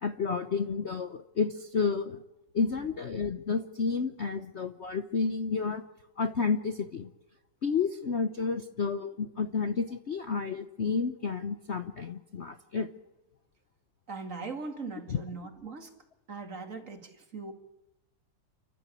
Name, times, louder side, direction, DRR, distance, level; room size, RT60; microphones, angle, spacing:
voice 1, 0.0-2.2 2.5-5.8 6.2-7.1 7.6-12.9 15.1-15.2, left 5 dB, 50° left, 9 dB, 0.9 m, -31 dB
voice 2, 14.1-15.9 16.3-17.5, right 4 dB, 45° right, 6 dB, 2.5 m, -40 dB
29.5 x 12.5 x 8.5 m, 0.97 s
omnidirectional pair, 2.0 m